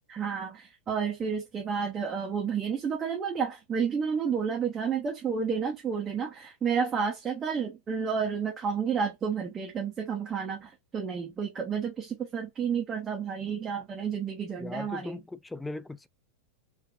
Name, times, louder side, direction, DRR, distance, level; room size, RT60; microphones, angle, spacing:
voice 1, 0.1-15.2, right 6 dB, 20° right, 0.8 m, -31 dB
voice 2, 14.6-16.1, left 2 dB, 5° left, 0.3 m, -38 dB
3.6 x 2.6 x 2.4 m
figure-of-eight pair, 90°, 0 cm